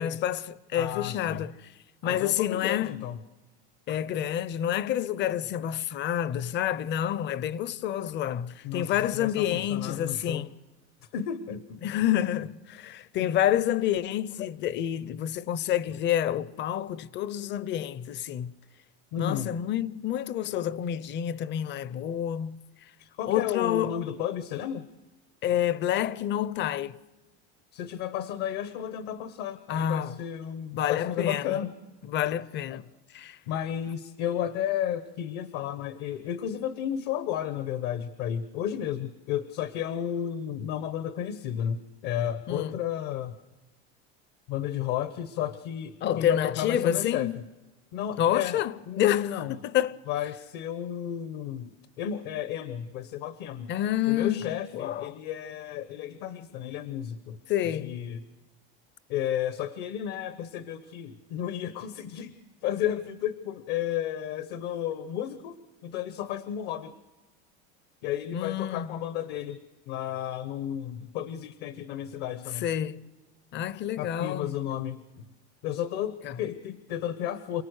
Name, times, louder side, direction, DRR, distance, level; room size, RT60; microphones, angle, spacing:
voice 1, 0.0-1.5 2.0-3.0 3.9-10.5 11.8-18.5 19.2-22.6 23.3-24.1 25.4-27.0 29.7-30.1 30.7-31.5 32.1-32.8 33.1-33.4 42.5-42.8 46.0-47.4 48.2-49.3 49.7-50.0 53.7-55.1 57.5-58.0 68.3-68.9 72.6-73.0 73.5-74.5 76.2-76.3, left 11 dB, 35° left, 0.7 m, -28 dB
voice 2, 0.7-1.4 2.0-3.2 8.6-10.5 11.1-11.8 13.2-13.3 19.1-19.6 23.0-24.9 27.7-31.7 32.7-32.8 33.5-43.3 44.5-47.3 47.9-49.6 50.1-53.7 54.1-57.4 57.7-58.2 59.1-62.3 62.6-65.6 65.8-66.9 68.0-69.6 69.9-72.7 74.0-75.3 75.6-77.6, left 10 dB, 65° left, 1.1 m, -33 dB
28.0 x 18.0 x 6.5 m
supercardioid pair, 135°, 32 cm